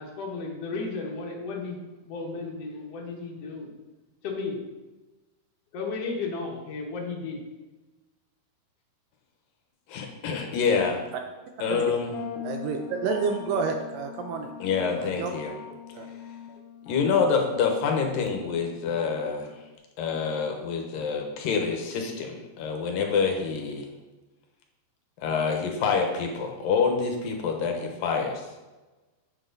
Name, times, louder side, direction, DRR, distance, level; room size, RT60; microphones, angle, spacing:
voice 1, 0.0-1.8 2.1-3.7 4.2-4.6 5.7-7.4, left 4 dB, 55° left, -1 dB, 1.9 m, -34 dB
voice 2, 9.9-11.0 11.6-12.1 14.6-15.6 16.9-19.5 20.0-23.9 25.2-28.4, left 5 dB, 70° left, 2 dB, 2.5 m, -26 dB
sound 1, 12.1-19.8, left 8 dB, 85° left, 1.7 m, -42 dB
voice 3, 12.4-14.6 15.0-15.3 15.9-16.1, right 5 dB, 80° right, 4 dB, 2.0 m, -29 dB
8.9 x 7.3 x 3.9 m, 1.2 s
omnidirectional pair, 4.6 m